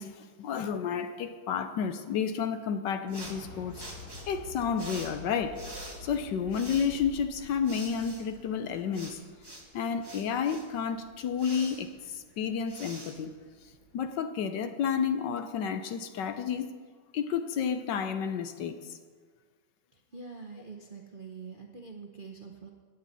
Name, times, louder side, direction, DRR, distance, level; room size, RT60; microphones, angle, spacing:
voice 1, 0.0-3.7 4.3-5.6 6.0-9.2 9.7-13.3 13.9-16.7 17.1-19.0, left 7 dB, 70° left, 9 dB, 1.3 m, -31 dB
sound 1, 3.1-14.0, right 1 dB, 15° right, 1.4 m, -47 dB
Explosion, 3.2-9.2, left 2 dB, 30° left, 1.7 m, -48 dB
voice 2, 20.1-22.7, right 4 dB, 50° right, 1 dB, 0.6 m, -45 dB
17.5 x 9.3 x 4.1 m, 1.5 s
omnidirectional pair, 2.1 m